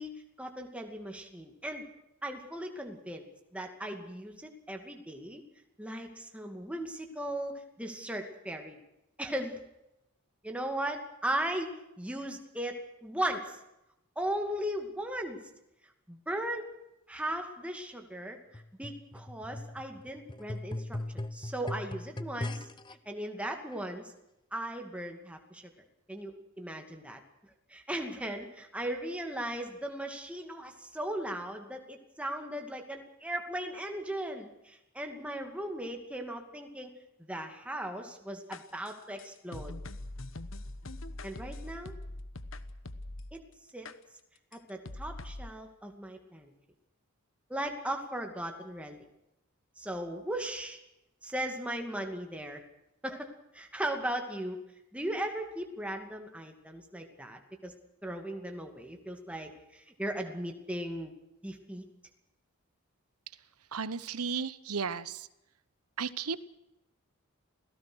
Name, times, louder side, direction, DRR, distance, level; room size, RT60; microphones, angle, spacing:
voice 1, 0.0-1.9 2.2-5.4 5.8-8.8 9.2-9.6 10.4-13.6 14.2-15.4 16.1-16.7 17.1-21.0 21.3-22.7 23.1-24.1 24.5-25.6 26.1-27.2 27.7-36.9 37.2-39.8 41.2-41.9 43.3-43.4 43.7-43.9 44.5-46.5 47.5-49.0 49.8-50.8 51.2-52.6 53.0-54.6 54.9-57.7 58.0-61.1 61.4-61.9, right 1 dB, 5° right, 3 dB, 2.4 m, -37 dB
sound 1, 18.5-23.0 23.7-23.8, left 1 dB, 20° left, 0.7 m, -39 dB
sound 2, 38.5-43.4 43.9-44.0 44.5-44.6 44.9-45.5, left 2 dB, 60° left, 1.2 m, -42 dB
voice 2, 63.7-65.3 66.0-66.4, right 5 dB, 85° right, 16 dB, 1.0 m, -34 dB
28.0 x 17.5 x 6.4 m, 0.89 s
head